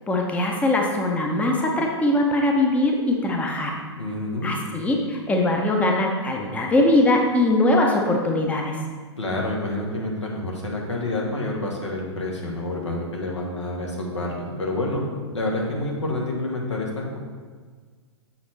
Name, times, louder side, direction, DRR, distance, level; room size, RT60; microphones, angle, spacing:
voice 1, 0.1-3.7 4.4-8.8, left 1 dB, 10° left, 1 dB, 0.7 m, -21 dB
voice 2, 4.0-4.6 9.2-15.0 15.3-17.2, left 2 dB, 80° left, -2 dB, 1.6 m, -28 dB
7.1 x 6.0 x 3.3 m, 1.5 s
figure-of-eight pair, 110°, 15 cm